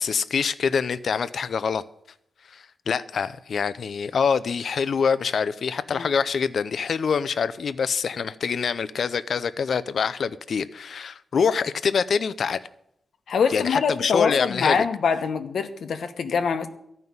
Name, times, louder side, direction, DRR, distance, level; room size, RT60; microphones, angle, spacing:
voice 1, 0.0-1.8 2.5-12.6 13.5-14.9, left 6 dB, 70° left, 0.5 m, -25 dB
voice 2, 13.3-16.7, left 6 dB, 85° left, 1.0 m, -24 dB
13.5 x 5.5 x 9.5 m
wide cardioid pair, 115°, 0 cm